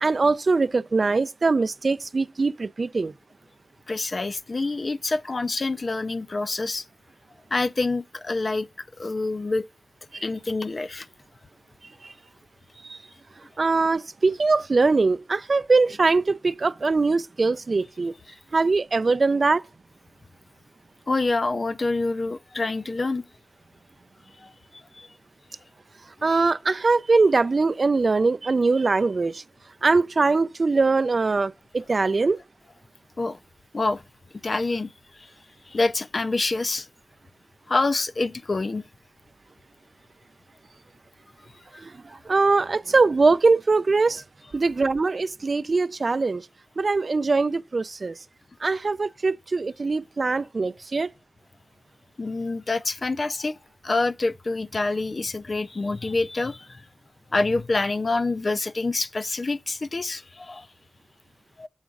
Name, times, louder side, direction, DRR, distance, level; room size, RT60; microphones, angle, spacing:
voice 1, 0.0-3.1 10.1-10.2 12.0-12.1 12.8-13.0 13.6-18.1 18.5-19.6 26.2-29.4 29.8-32.4 41.8-44.2 44.5-46.4 46.8-48.2 48.6-51.1, right 3 dB, 60° right, 0.3 m, -22 dB
voice 2, 3.9-6.8 7.5-8.7 9.0-9.6 10.2-11.1 21.1-23.2 24.4-24.5 24.9-25.1 33.2-33.4 33.7-34.0 34.4-34.9 35.2-35.3 35.7-36.9 37.7-38.8 52.2-53.6 53.8-56.9 57.3-60.7 61.6-61.7, left 3 dB, 55° left, 0.4 m, -26 dB
7.1 x 4.6 x 5.1 m
wide cardioid pair, 80°, 0 cm